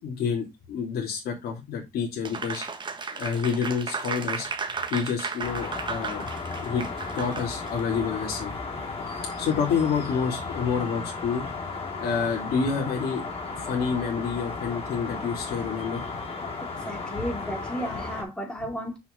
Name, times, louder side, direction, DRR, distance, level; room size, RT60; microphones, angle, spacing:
voice 1, 0.0-2.6 3.1-4.5 4.9-6.2 6.6-6.8 7.1-8.5 9.4-11.4 12.0-13.2 13.5-16.0 17.2-17.3, left 6 dB, 65° left, 3.0 m, -28 dB
Applause, 2.2-7.8, right 5 dB, 30° right, 1.2 m, -34 dB
sound 1, 5.4-18.2, left 3 dB, 35° left, 3.2 m, -35 dB
voice 2, 16.6-19.0, equal, 5° left, 2.4 m, -33 dB
6.2 x 5.6 x 4.0 m
cardioid pair, 110°, 17 cm